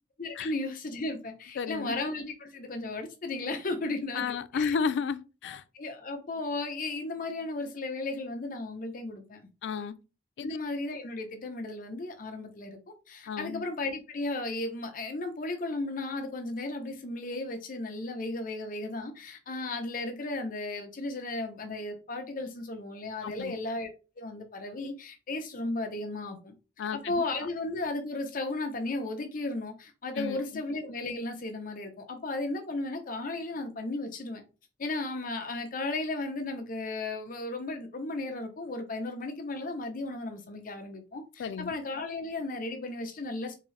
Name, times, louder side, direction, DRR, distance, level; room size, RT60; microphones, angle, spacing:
voice 1, 0.2-4.2 4.5-4.8 5.4-9.4 10.4-12.8 13.1-23.9 24.2-26.5 26.9-34.4 34.8-43.5, left 2 dB, 50° left, 0.7 m, -35 dB
voice 2, 1.6-2.0 4.1-5.6 9.6-10.0 10.4-10.6 13.3-13.6 23.2-23.6 26.8-27.2 30.2-30.6 41.4-41.7, left 6 dB, 85° left, 0.3 m, -33 dB
3.7 x 2.7 x 3.2 m
head